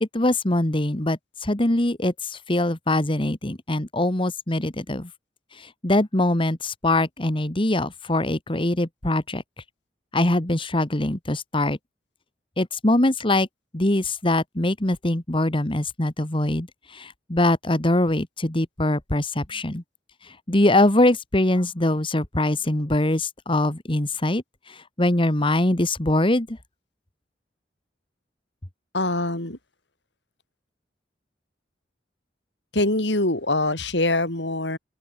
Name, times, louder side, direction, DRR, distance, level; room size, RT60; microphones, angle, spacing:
voice 1, 0.0-5.1 5.8-9.4 10.1-11.8 12.6-13.5 13.7-16.7 16.9-19.8 20.5-24.4 25.0-26.6, left 1 dB, 30° left, 1.7 m, -23 dB
voice 2, 28.9-29.6 32.7-34.8, left 2 dB, 70° left, 5.2 m, -24 dB
open air
head